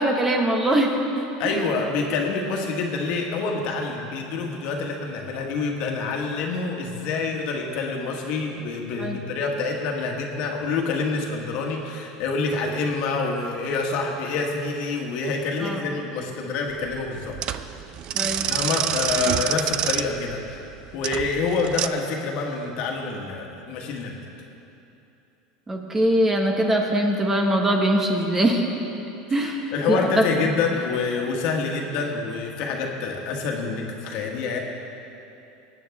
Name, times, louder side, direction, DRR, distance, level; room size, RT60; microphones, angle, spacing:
voice 1, 0.0-1.6 9.0-9.2 15.6-15.8 18.1-18.5 25.7-28.7 29.3-30.3, right 1 dB, 15° right, 2 dB, 1.2 m, -22 dB
voice 2, 1.4-17.6 18.5-20.6 20.9-24.2 29.4-34.6, left 4 dB, 60° left, 1 dB, 1.6 m, -27 dB
sound 1, 16.7-21.9, right 11 dB, 45° right, 0.4 m, -27 dB
19.0 x 9.0 x 3.6 m, 2.9 s
supercardioid pair, 125°, 2 cm